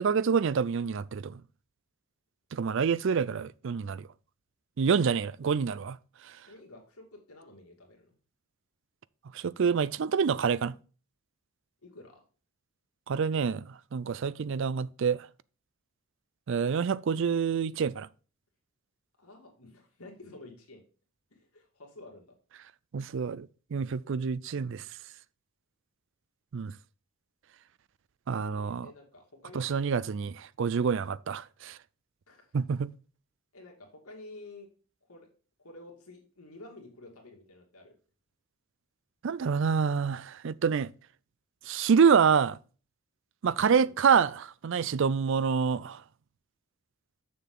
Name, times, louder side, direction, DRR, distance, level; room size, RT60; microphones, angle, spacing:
voice 1, 0.0-1.4 2.5-4.1 4.8-6.0 9.3-10.8 13.1-15.3 16.5-18.1 22.9-24.8 26.5-26.7 28.3-28.9 29.5-31.8 32.5-32.9 39.2-40.9 41.7-42.6 43.4-46.0, right 6 dB, 55° right, 0.4 m, -27 dB
voice 2, 6.4-8.2 11.8-12.2 19.2-20.8 21.3-22.3 28.4-29.7 30.8-31.0 32.3-32.5 33.5-34.7 35.1-35.3 35.6-37.9 43.8-43.9, left 2 dB, 80° left, 2.4 m, -50 dB
6.8 x 6.7 x 3.8 m
head